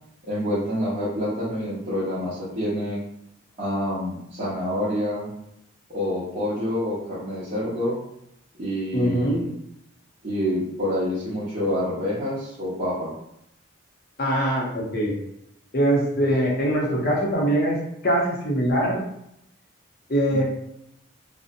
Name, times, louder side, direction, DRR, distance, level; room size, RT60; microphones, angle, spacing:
voice 1, 0.2-3.0 3.6-5.3 5.9-8.0 8.6-9.5 10.2-13.1 16.2-16.3 20.3-20.4, left 1 dB, 35° right, -10 dB, 0.7 m, -27 dB
voice 2, 8.9-9.4 14.2-15.1 15.7-17.8 18.0-19.0 20.1-20.4, right 1 dB, 45° left, -2 dB, 0.6 m, -22 dB
2.6 x 2.0 x 2.5 m, 0.79 s
head